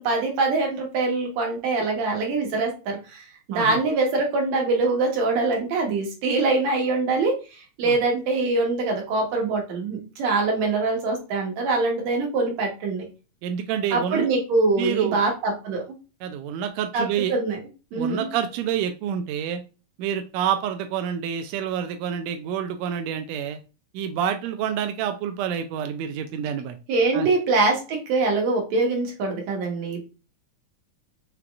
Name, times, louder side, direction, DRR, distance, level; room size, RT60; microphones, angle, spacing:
voice 1, 0.0-13.1 13.9-15.8 16.9-17.6 17.9-18.3 26.9-30.0, right 3 dB, 65° right, 1 dB, 2.4 m, -24 dB
voice 2, 13.4-14.3 14.8-15.2 16.2-17.3 17.9-19.6 20.0-23.6 23.9-26.8 27.1-27.3, right 9 dB, 80° right, 7 dB, 1.6 m, -28 dB
5.8 x 3.4 x 2.4 m, 0.32 s
omnidirectional pair, 3.5 m